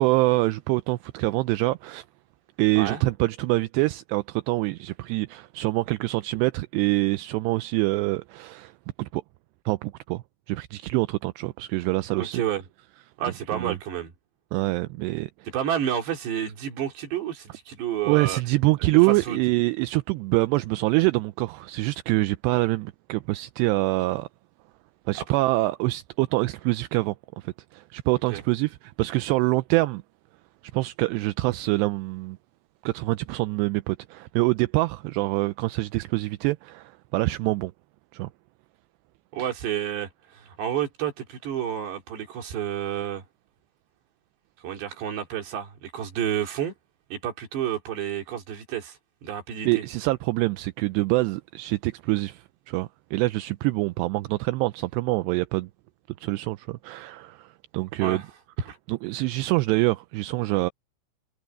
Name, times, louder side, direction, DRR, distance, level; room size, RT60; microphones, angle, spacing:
voice 1, 0.0-2.1 2.6-8.7 9.0-9.2 9.7-12.4 13.5-13.8 14.5-15.3 18.1-24.3 25.1-30.0 30.7-32.4 32.8-37.7 38.1-38.3 49.6-55.7 56.2-58.2 58.9-60.7, right 21 dB, 85° right, 2.5 m, -25 dB
voice 2, 12.2-12.6 13.2-14.1 15.5-18.4 19.1-19.4 25.2-25.4 28.3-28.4 39.3-43.2 44.6-46.7 47.1-49.8 58.0-58.2 58.7-58.8, right 9 dB, 65° right, 4.9 m, -30 dB
omnidirectional pair, 5.4 m